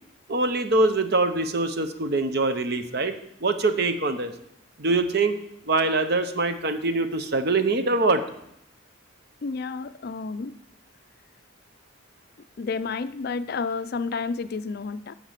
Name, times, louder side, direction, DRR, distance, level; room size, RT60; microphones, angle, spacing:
voice 1, 0.3-4.3 4.8-5.4 5.7-8.2, right 2 dB, 50° right, 9 dB, 0.8 m, -24 dB
voice 2, 9.4-10.5 12.6-15.1, left 4 dB, 45° left, 13 dB, 0.4 m, -30 dB
8.1 x 6.6 x 7.4 m, 0.76 s
head